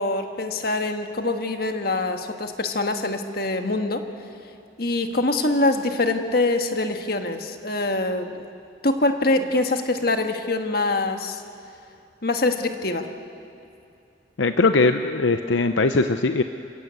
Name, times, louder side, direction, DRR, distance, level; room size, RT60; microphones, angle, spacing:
voice 1, 0.0-4.0 4.8-8.5 8.8-11.4 12.2-13.1, left 2 dB, 50° left, 6 dB, 1.5 m, -24 dB
voice 2, 14.4-16.4, left 3 dB, 75° left, 8 dB, 0.7 m, -20 dB
28.5 x 16.5 x 8.2 m, 2.5 s
head